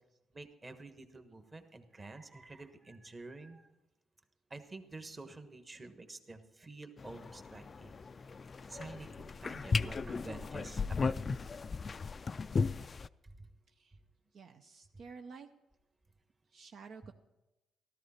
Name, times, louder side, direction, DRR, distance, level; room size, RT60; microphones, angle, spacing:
voice 1, 0.3-3.7 4.5-8.3 8.6-11.1 13.4-13.5, right 3 dB, 25° right, 8 dB, 1.3 m, -49 dB
sound 1, 7.0-13.1, left 4 dB, 35° left, 0.3 m, -36 dB
voice 2, 14.3-15.5 16.5-17.1, right 5 dB, 60° right, 5 dB, 0.6 m, -51 dB
13.5 x 13.0 x 4.3 m, 0.99 s
cardioid pair, 90°, 0 cm